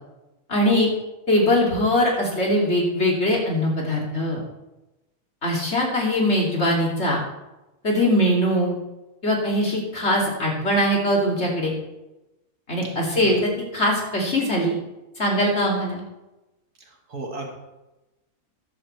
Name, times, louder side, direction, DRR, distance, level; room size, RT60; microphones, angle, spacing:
voice 1, 0.5-0.9 1.3-4.4 5.4-7.2 7.8-8.8 9.2-11.7 12.7-14.7 15.2-16.0, left 1 dB, 40° left, -2 dB, 3.1 m, -21 dB
voice 2, 13.1-13.4 17.1-17.5, right 2 dB, 70° right, 1 dB, 2.5 m, -34 dB
14.0 x 11.0 x 3.4 m, 0.99 s
omnidirectional pair, 1.7 m